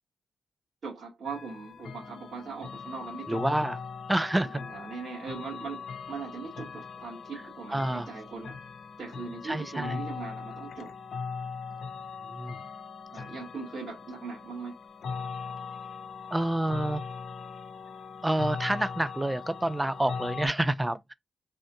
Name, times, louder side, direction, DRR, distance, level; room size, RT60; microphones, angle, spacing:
voice 1, 0.8-3.4 4.7-8.6 9.0-10.9 13.1-14.8, right 4 dB, 70° right, 1.6 m, -40 dB
sound 1, 1.2-20.5, left 5 dB, 80° left, 0.6 m, -40 dB
voice 2, 3.3-3.8 4.1-4.6 7.7-8.1 9.4-10.0 12.3-12.6 16.3-17.0 18.2-21.1, right 1 dB, 15° right, 0.4 m, -28 dB
3.5 x 2.6 x 2.7 m
cardioid pair, 55°, 0 cm